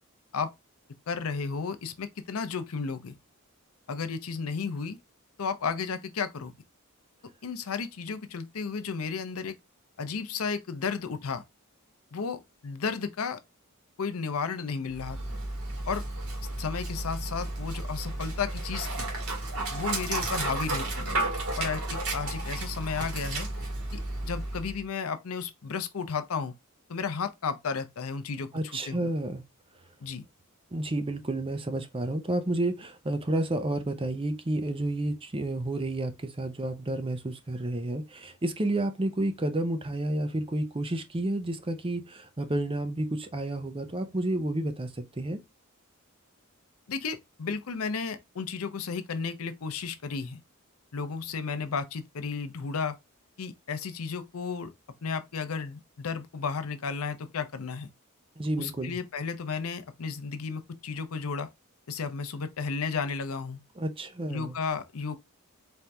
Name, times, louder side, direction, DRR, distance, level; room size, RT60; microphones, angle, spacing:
voice 1, 1.1-3.2 3.9-5.0 5.4-6.5 7.4-9.6 10.0-11.4 12.1-13.4 14.0-15.2 15.8-16.0 16.6-19.1 19.7-21.2 21.6-23.5 23.9-26.5 26.9-29.1 30.0-30.2 46.9-50.4 50.9-53.0 53.4-54.7 55.0-57.9 58.6-61.5 61.9-63.6 64.3-65.2, left 5 dB, 70° left, 0.6 m, -33 dB
Dog, 14.9-24.8, right 2 dB, 70° right, 1.7 m, -33 dB
voice 2, 28.5-29.4 30.7-45.4 58.4-59.0 63.8-64.5, right 1 dB, 25° right, 0.6 m, -30 dB
4.4 x 2.6 x 3.3 m
head